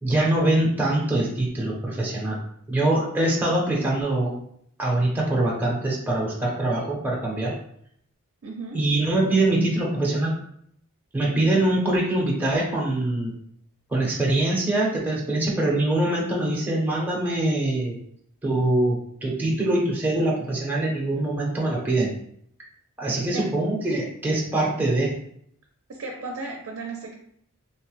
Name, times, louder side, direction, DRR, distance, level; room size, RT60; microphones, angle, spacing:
voice 1, 0.0-2.4 2.7-4.3 4.8-7.6 8.7-10.3 11.1-13.3 13.9-18.0 18.4-22.1 23.0-25.2, right 2 dB, 10° right, -3 dB, 0.6 m, -23 dB
voice 2, 8.4-8.9 23.2-23.5 25.9-27.1, right 3 dB, 65° right, 1 dB, 0.5 m, -35 dB
3.0 x 2.1 x 3.1 m, 0.67 s
head